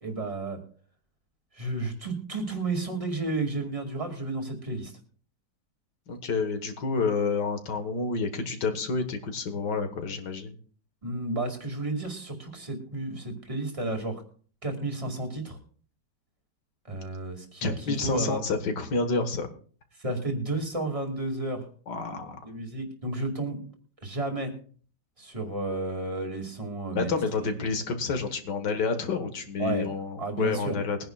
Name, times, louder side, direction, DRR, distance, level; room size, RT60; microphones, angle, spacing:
voice 1, 0.0-0.6 1.6-4.9 11.0-14.2 14.6-15.6 16.9-18.4 20.0-21.6 22.4-23.6 24.0-24.5 25.2-27.6 29.6-29.9 30.2-30.8, right 2 dB, 20° right, 3 dB, 2.4 m, -32 dB
voice 2, 6.1-10.6 17.6-19.5 21.9-22.4 26.9-31.0, left 4 dB, 85° left, 6 dB, 2.1 m, -29 dB
22.0 x 10.5 x 2.4 m, 0.44 s
omnidirectional pair, 1.8 m